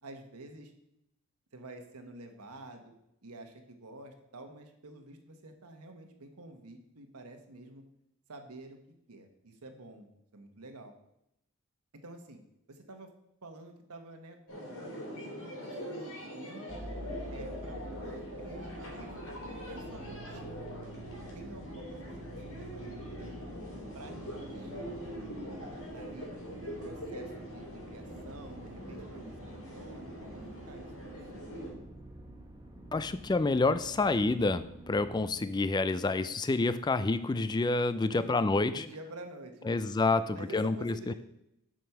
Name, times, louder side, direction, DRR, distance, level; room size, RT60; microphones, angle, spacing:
voice 1, 0.0-0.7 1.5-2.9 3.2-7.8 8.3-8.8 9.1-10.1 10.3-10.9 11.9-12.4 12.7-13.1 13.4-14.8 15.1-16.8 17.3-21.0 21.3-23.4 23.9-24.9 25.9-26.3 26.6-31.6 38.1-39.8 40.3-41.1, right 2 dB, 90° right, 5 dB, 1.2 m, -49 dB
sound 1, 14.5-31.7, equal, 75° left, 3.3 m, -43 dB
sound 2, 16.7-35.3, right 1 dB, 15° right, 1.1 m, -48 dB
voice 2, 32.9-38.8 39.7-41.1, left 3 dB, 20° left, 13 dB, 0.3 m, -28 dB
7.5 x 5.2 x 5.9 m, 0.81 s
head